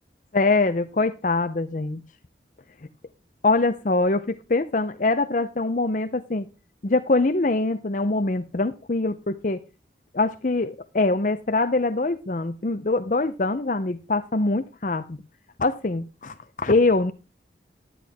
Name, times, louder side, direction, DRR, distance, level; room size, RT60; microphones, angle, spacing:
voice 1, 0.3-2.0 3.4-6.5 6.8-9.6 10.1-15.2 15.6-17.1, left 3 dB, 45° left, 10 dB, 0.6 m, -23 dB
11.0 x 10.5 x 3.5 m, 0.32 s
head